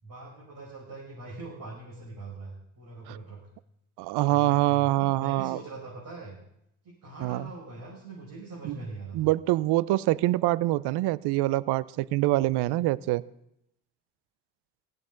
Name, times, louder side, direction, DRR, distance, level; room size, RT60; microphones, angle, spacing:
voice 1, 0.0-3.4 4.1-6.4 6.8-9.3, right 3 dB, 50° right, -6 dB, 6.2 m, -42 dB
voice 2, 4.0-5.6 7.2-7.5 8.6-8.8 9.1-13.2, right 17 dB, 70° right, 21 dB, 0.6 m, -25 dB
16.5 x 14.5 x 3.9 m, 0.78 s
hypercardioid pair, 50°, 41 cm